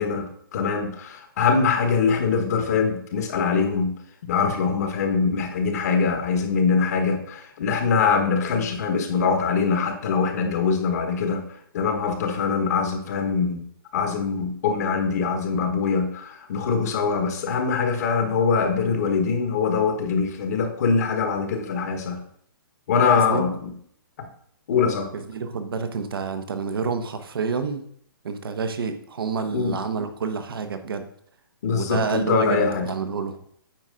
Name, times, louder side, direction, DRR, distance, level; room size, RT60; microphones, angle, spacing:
voice 1, 0.0-3.9 4.2-11.4 11.7-13.6 13.9-22.2 22.9-23.7 24.2-24.3 24.7-25.1 29.5-29.8 31.6-32.9, left 5 dB, 45° left, 6 dB, 1.2 m, -23 dB
voice 2, 23.1-23.4 25.1-27.9 28.2-31.1 31.7-33.4, right 5 dB, 75° right, 9 dB, 1.0 m, -28 dB
8.9 x 5.0 x 3.8 m, 0.65 s
hypercardioid pair, 160°, 12 cm